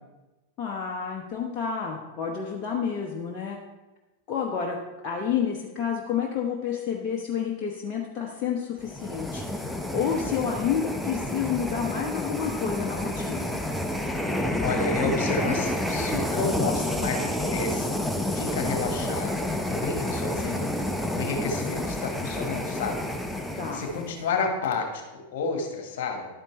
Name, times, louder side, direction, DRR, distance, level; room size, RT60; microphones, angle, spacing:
voice 1, 0.6-3.6 4.3-4.8 5.0-13.6 23.6-23.9, left 7 dB, 35° left, -1 dB, 1.0 m, -30 dB
sound 1, 8.8-24.2, left 1 dB, ahead, 0.8 m, -29 dB
voice 2, 14.6-19.4 19.7-20.7 21.1-23.0 23.5-26.3, left 4 dB, 55° left, 4 dB, 1.6 m, -31 dB
11.0 x 8.8 x 3.2 m, 1.1 s
figure-of-eight pair, 90°, 0 cm